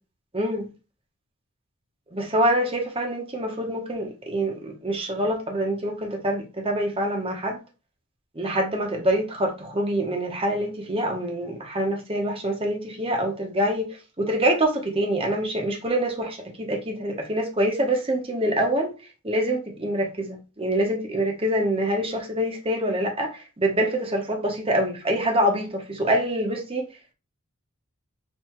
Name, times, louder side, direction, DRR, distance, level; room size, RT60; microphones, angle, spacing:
voice 1, 0.3-0.7 2.1-7.6 8.4-18.9 19.2-26.9, right 1 dB, 25° right, 0.8 m, -25 dB
6.5 x 2.7 x 3.0 m
head